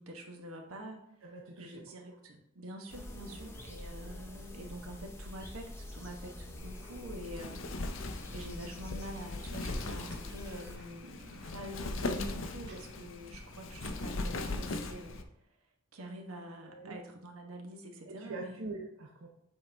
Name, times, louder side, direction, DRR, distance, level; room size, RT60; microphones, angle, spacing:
voice 1, 0.0-1.0 1.6-15.2 15.9-18.6, equal, 90° right, 2 dB, 1.2 m, -46 dB
voice 2, 1.2-2.2 3.2-3.5 16.6-17.0 18.1-19.3, right 3 dB, 70° right, -1 dB, 0.7 m, -44 dB
sound 1, 2.9-10.8, left 1 dB, 10° left, 0.6 m, -46 dB
Wind, 6.6-15.2, left 2 dB, 65° left, 0.6 m, -39 dB
Cough, 9.8-14.9, right 2 dB, 50° right, 1.2 m, -59 dB
7.5 x 4.2 x 3.4 m, 0.82 s
head